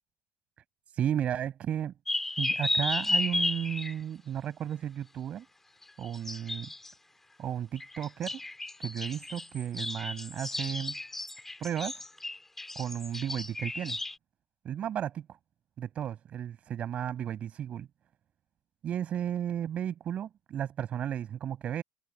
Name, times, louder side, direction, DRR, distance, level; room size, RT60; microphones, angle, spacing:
voice 1, 0.9-1.9 2.4-5.5 6.0-6.7 7.4-8.4 8.8-11.0 11.6-12.0 12.8-14.0 14.6-15.3 15.8-17.9 18.8-21.8, right 10 dB, 35° right, 7.3 m, -34 dB
sound 1, 2.1-3.9 5.8-6.9 7.8-14.2, left 2 dB, 10° left, 6.9 m, -33 dB
cardioid pair, 155°, 4 cm